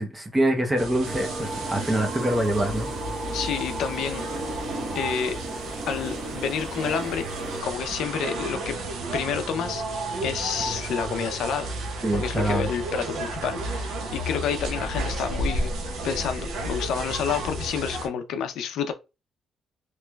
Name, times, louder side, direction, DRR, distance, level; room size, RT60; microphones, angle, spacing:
voice 1, 0.0-2.9 12.0-12.7, right 1 dB, 10° right, 0.6 m, -25 dB
sound 1, 0.8-18.1, right 2 dB, 70° right, 0.8 m, -32 dB
sound 2, 1.1-7.6, right 1 dB, 30° right, 1.0 m, -35 dB
voice 2, 3.3-4.3 4.9-5.4 5.9-7.2 7.6-8.8 9.1-9.8 10.2-11.8 12.1-15.7 16.0-18.9, left 7 dB, 75° left, 0.5 m, -29 dB
3.2 x 3.0 x 2.2 m
cardioid pair, 175°, 0 cm